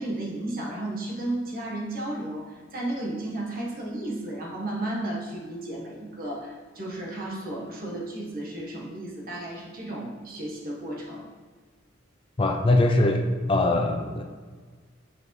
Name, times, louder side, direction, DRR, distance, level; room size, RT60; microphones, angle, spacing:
voice 1, 0.0-11.3, right 1 dB, 45° right, -3 dB, 1.3 m, -33 dB
voice 2, 12.4-14.2, left 2 dB, 25° left, 3 dB, 0.4 m, -22 dB
7.6 x 4.9 x 3.1 m, 1.5 s
head